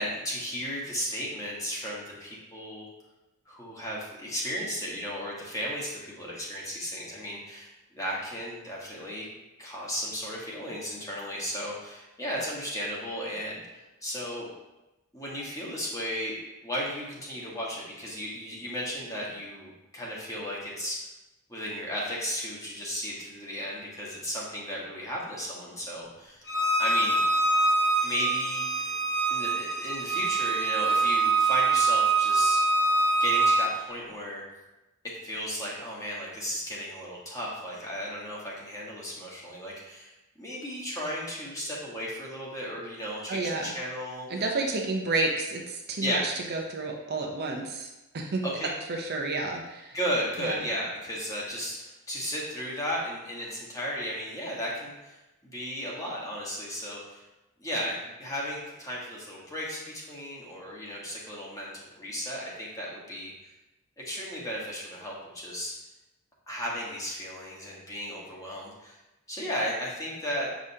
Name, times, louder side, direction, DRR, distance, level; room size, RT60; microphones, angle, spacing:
voice 1, 0.0-2.9 3.5-9.3 9.6-14.5 15.1-21.0 21.5-26.4 26.8-27.2 28.0-28.9 29.3-32.6 33.2-34.4 35.2-40.1 40.4-44.3 46.0-46.3 48.4-48.7 49.9-57.2 57.6-63.3 64.0-65.7 66.5-69.0 69.3-70.5, equal, 15° left, -4 dB, 1.3 m, -34 dB
Bowed string instrument, 26.5-33.7, right 3 dB, 50° left, 1.0 m, -24 dB
voice 2, 43.3-43.7 44.3-48.4 48.9-50.0 50.4-50.6, right 3 dB, 45° right, 1 dB, 0.7 m, -31 dB
7.1 x 5.0 x 2.8 m, 1.0 s
head